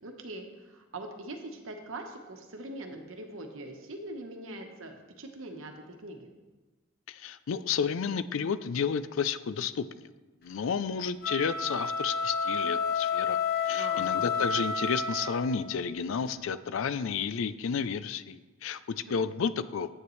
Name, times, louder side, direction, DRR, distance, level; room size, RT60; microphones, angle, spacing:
voice 1, 0.0-6.3 13.6-14.3 19.1-19.2, right 2 dB, 70° right, 4 dB, 1.1 m, -42 dB
voice 2, 7.1-10.1 10.4-13.4 13.7-19.9, left 6 dB, 70° left, 14 dB, 0.4 m, -31 dB
sound 1, 11.1-15.7, left 5 dB, 50° left, 1.0 m, -30 dB
9.5 x 8.7 x 3.2 m, 1.2 s
head